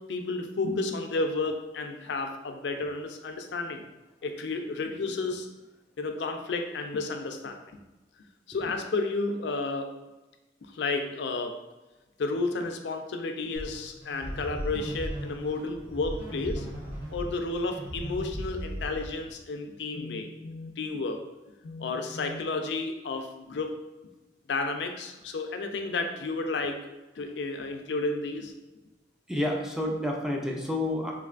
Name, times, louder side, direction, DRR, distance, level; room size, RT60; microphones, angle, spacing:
voice 1, 0.0-3.8 4.2-5.5 6.0-7.6 8.5-9.9 10.6-11.6 12.2-16.7 17.1-21.2 21.6-23.8 24.5-26.8 27.2-28.5, left 3 dB, 75° left, 5 dB, 0.4 m, -32 dB
sound 1, 13.6-19.4, equal, 50° right, 1.0 m, -37 dB
voice 2, 29.3-31.1, left 1 dB, 5° right, 0 dB, 0.4 m, -29 dB
3.6 x 3.2 x 2.4 m, 1.1 s
head